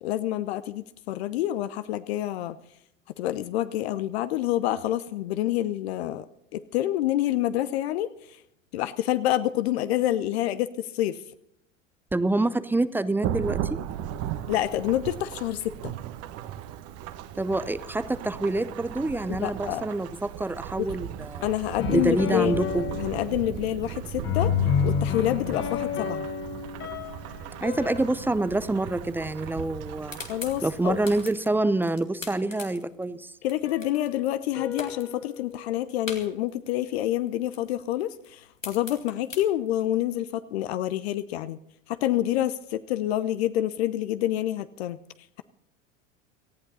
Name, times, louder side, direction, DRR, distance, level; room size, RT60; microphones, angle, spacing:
voice 1, 0.0-2.6 3.2-6.3 6.5-8.1 8.7-11.2 14.5-15.9 19.3-19.8 20.8-20.9 21.4-22.7 23.0-24.5 24.8-26.3 30.3-31.0 33.4-41.6 41.9-45.0, left 13 dB, 55° left, 13 dB, 0.8 m, -27 dB
voice 2, 12.1-13.8 17.4-21.5 21.9-22.9 27.6-30.2 30.6-33.3, right 2 dB, 5° right, 16 dB, 0.6 m, -26 dB
Thunderstorm / Rain, 13.2-31.3, right 10 dB, 40° right, 1.2 m, -37 dB
sound 1, 21.8-24.0 24.2-28.6 33.6-35.7, left 8 dB, 30° left, 2.0 m, -31 dB
sound 2, 29.8-34.5 34.7-36.8 37.1-40.0, left 3 dB, 90° left, 2.3 m, -42 dB
18.5 x 15.0 x 4.1 m, 0.78 s
figure-of-eight pair, 85°, 38 cm